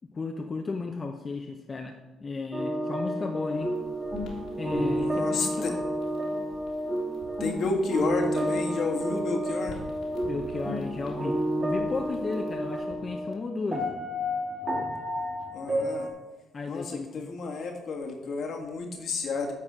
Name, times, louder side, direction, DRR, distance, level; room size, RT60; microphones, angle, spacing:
voice 1, 0.1-3.7 4.6-5.8 10.2-13.8 16.5-17.3, left 4 dB, 35° left, 3 dB, 0.7 m, -34 dB
sound 1, 2.5-13.3 13.7-16.1, equal, 35° right, 2.1 m, -30 dB
sound 2, 3.4-13.2, left 2 dB, 80° left, 2.3 m, -49 dB
voice 2, 5.0-5.7 7.4-9.8 15.5-16.1 16.6-19.5, left 4 dB, 65° left, 1 dB, 1.6 m, -31 dB
9.7 x 4.1 x 6.1 m, 1.1 s
cardioid pair, 90°, 0 cm